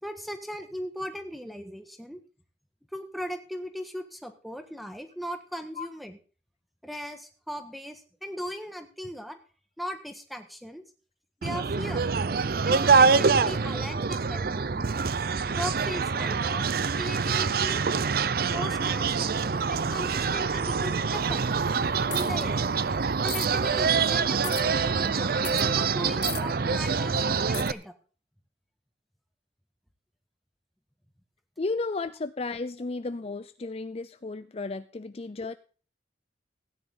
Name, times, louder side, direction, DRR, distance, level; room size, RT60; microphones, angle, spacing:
voice 1, 0.0-2.2 2.9-6.2 6.8-9.4 9.8-10.8 11.4-12.1 12.6-14.9 15.5-17.8 18.5-21.7 22.1-22.7 23.2-27.2 27.5-27.9, equal, ahead, 7 dB, 1.6 m, -38 dB
sound 1, 11.4-27.7, right 5 dB, 55° right, 0.6 m, -25 dB
sound 2, 22.1-22.4 23.3-23.5 24.4-24.6 25.4-25.7 26.2-26.4 27.5-27.7, left 15 dB, 75° left, 1.1 m, -36 dB
voice 2, 31.6-35.6, left 3 dB, 35° left, 12 dB, 0.5 m, -34 dB
16.5 x 9.9 x 3.9 m, 0.38 s
head